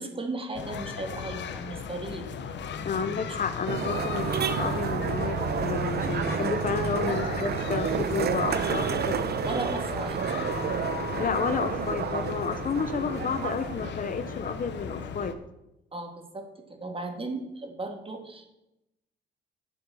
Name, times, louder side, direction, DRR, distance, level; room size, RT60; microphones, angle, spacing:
voice 1, 0.0-2.3 3.2-3.4 9.5-10.4 15.9-18.5, right 2 dB, 25° right, 5 dB, 2.2 m, -36 dB
sound 1, 0.5-15.3, left 7 dB, 65° left, 1.1 m, -37 dB
voice 2, 2.8-9.2 11.2-15.4, left 6 dB, 45° left, 10 dB, 0.8 m, -31 dB
sound 2, 3.7-15.2, right 7 dB, 55° right, 0.9 m, -30 dB
10.0 x 7.8 x 7.0 m, 0.90 s
cardioid pair, 90°, 20 cm